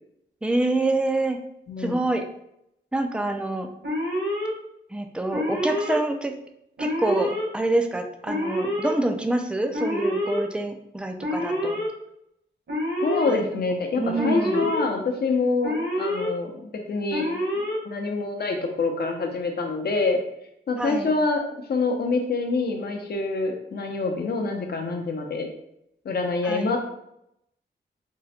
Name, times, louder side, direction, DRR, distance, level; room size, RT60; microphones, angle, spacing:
voice 1, 0.4-1.4 1.8-2.2 2.9-3.7 4.9-6.4 6.8-11.8 13.3-14.7 20.8-21.1 26.4-26.7, right 2 dB, 5° right, 5 dB, 0.3 m, -26 dB
voice 2, 1.7-2.0 13.0-17.3 17.8-20.2 20.7-21.4 21.7-25.5 26.0-26.8, left 3 dB, 55° left, 3 dB, 0.7 m, -26 dB
Alarm, 3.8-4.5 5.3-6.0 6.8-7.4 8.3-8.9 9.7-10.4 11.2-11.9 12.7-13.3 14.1-14.8 15.6-16.3 17.1-17.8, left 1 dB, 70° right, 1.3 m, -27 dB
3.7 x 2.1 x 4.1 m, 0.78 s
wide cardioid pair, 145°, 19 cm